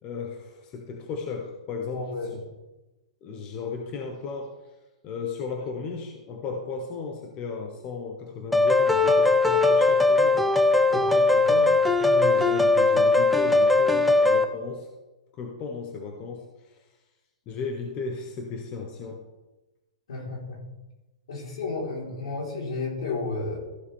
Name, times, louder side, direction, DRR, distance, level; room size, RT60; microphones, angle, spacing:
voice 1, 0.0-2.4 3.2-4.6 5.0-14.9 15.3-16.8 17.5-19.2, left 4 dB, 30° left, 2 dB, 1.2 m, -35 dB
voice 2, 1.9-2.4 10.9-11.0 11.3-11.5 20.1-20.6 21.3-23.6, left 3 dB, 80° left, -2 dB, 4.3 m, -32 dB
sound 1, 8.5-14.4, left 3 dB, ahead, 0.6 m, -20 dB
14.5 x 7.3 x 3.6 m, 1.1 s
hypercardioid pair, 150°, 3 cm